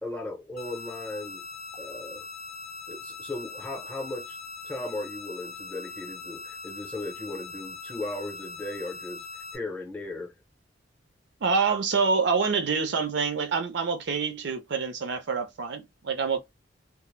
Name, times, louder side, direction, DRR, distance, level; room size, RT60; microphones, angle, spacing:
voice 1, 0.0-1.4 1.8-2.3 2.9-4.4 4.6-10.3, left 2 dB, 10° left, 0.7 m, -37 dB
sound 1, 0.6-9.6, left 4 dB, 50° left, 0.6 m, -41 dB
voice 2, 11.4-16.4, right 5 dB, 65° right, 0.5 m, -26 dB
2.1 x 2.0 x 3.0 m
head